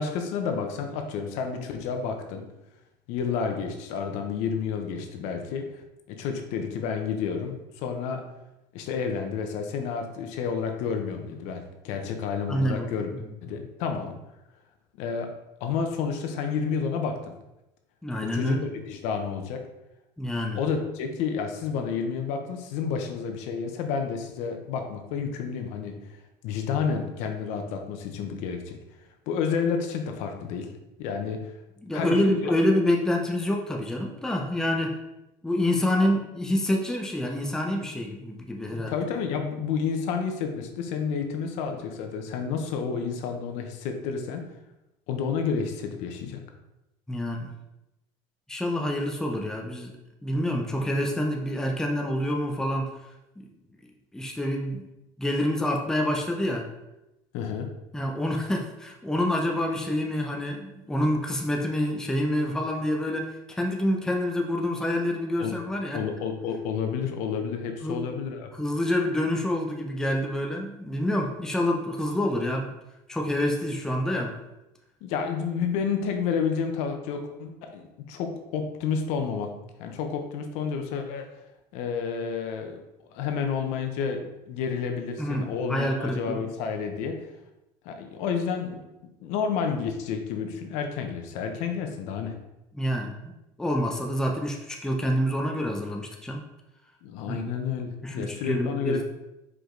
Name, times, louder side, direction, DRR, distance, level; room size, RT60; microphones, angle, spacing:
voice 1, 0.0-2.4 3.1-5.8 6.1-8.2 8.7-13.1 13.4-14.1 15.0-15.3 15.6-17.2 18.2-19.6 20.5-25.9 26.4-28.8 29.3-30.7 31.0-31.5 31.9-32.4 35.8-36.1 38.7-44.4 45.1-46.4 57.3-57.7 65.4-65.6 65.9-68.5 75.0-79.5 79.8-81.2 81.7-82.8 83.1-87.2 87.8-88.8 89.2-92.3 97.0-99.0, left 6 dB, 70° left, 5 dB, 0.9 m, -30 dB
voice 2, 12.5-13.0 18.0-18.6 20.2-20.6 31.8-35.0 35.4-38.9 47.1-47.5 48.5-50.0 50.2-52.9 53.4-53.5 54.1-54.9 55.2-56.7 57.9-66.0 67.8-68.0 68.5-72.7 73.1-74.3 85.2-86.4 92.7-93.3 93.6-96.4 97.3-97.4 98.0-99.0, left 1 dB, 5° left, 1 dB, 0.7 m, -27 dB
5.0 x 4.9 x 3.8 m, 0.94 s
cardioid pair, 150°, 12 cm